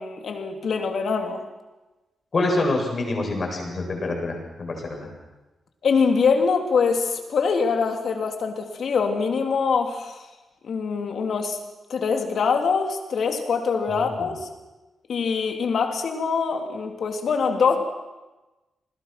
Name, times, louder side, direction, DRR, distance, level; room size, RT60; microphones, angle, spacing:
voice 1, 0.0-1.4 5.8-10.2 10.6-11.6 11.9-14.5 15.1-17.8, left 5 dB, 65° left, 4 dB, 3.3 m, -24 dB
voice 2, 2.3-5.1 13.9-14.3, left 2 dB, 40° left, 1 dB, 7.9 m, -26 dB
29.0 x 20.5 x 6.1 m, 1.1 s
wide cardioid pair, 120°, 0 cm